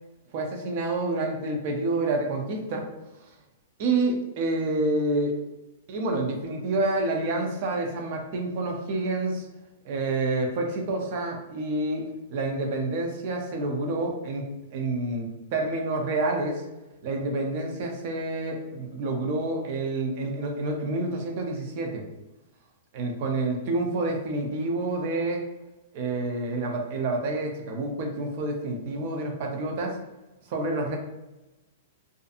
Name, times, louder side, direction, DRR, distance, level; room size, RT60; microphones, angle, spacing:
voice 1, 0.3-2.8 3.8-5.4 5.9-9.5 9.8-12.1 12.3-16.6 17.0-22.0 22.9-25.4 25.9-30.0 30.5-31.0, right 2 dB, 40° right, 2 dB, 0.4 m, -28 dB
2.6 x 2.4 x 2.4 m, 1.0 s
supercardioid pair, 175°, 0 cm